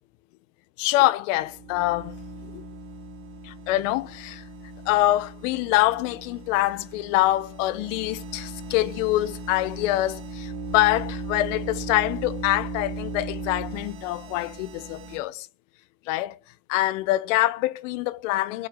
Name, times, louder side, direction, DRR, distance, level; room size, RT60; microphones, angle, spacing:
voice 1, 0.8-2.1 2.4-2.6 3.4-4.4 4.8-15.5 16.1-16.4 16.7-18.7, left 17 dB, 75° left, 1.0 m, -25 dB
sound 1, 1.3-15.2, right 2 dB, 75° right, 2.9 m, -37 dB
23.0 x 8.7 x 5.2 m
supercardioid pair, 95°, 38 cm